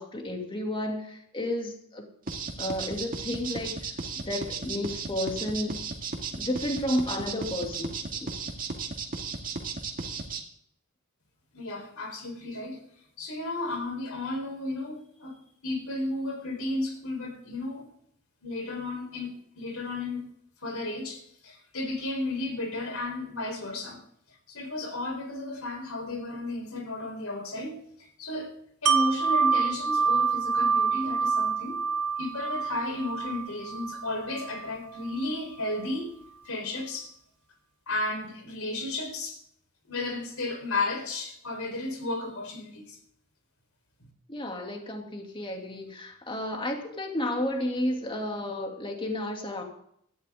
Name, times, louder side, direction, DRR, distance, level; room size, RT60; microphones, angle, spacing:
voice 1, 0.0-2.0 2.6-5.8 6.4-8.3 44.3-49.6, left 1 dB, 25° left, 2.6 m, -32 dB
sound 1, 2.3-10.4, right 4 dB, 40° right, 2.1 m, -34 dB
voice 2, 11.5-12.8 13.2-15.4 15.6-17.9 18.4-20.3 20.6-24.0 24.5-27.8 28.2-28.5 28.8-31.8 32.2-36.1 36.4-37.1 37.9-39.4 39.9-43.0 44.0-44.1, left 2 dB, 70° left, 4.1 m, -33 dB
Wind chime, 28.9-34.7 35.1-35.2, right 5 dB, 85° right, 1.4 m, -27 dB
17.0 x 14.0 x 3.7 m
head